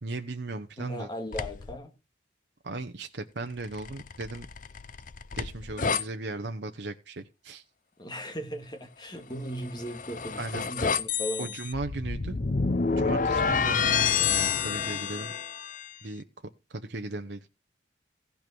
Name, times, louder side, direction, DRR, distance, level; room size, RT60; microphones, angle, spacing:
voice 1, 0.0-1.1 2.6-4.5 5.4-7.6 10.4-10.7 11.4-12.4 13.0-15.3 16.0-16.2 16.7-17.5, right 2 dB, 70° right, 0.8 m, -36 dB
voice 2, 0.8-1.9 8.0-11.6, equal, 25° left, 1.9 m, -37 dB
sound 1, 1.3-1.8 3.6-6.0 9.5-15.9, left 6 dB, 45° left, 0.6 m, -29 dB
15.5 x 5.7 x 6.1 m
head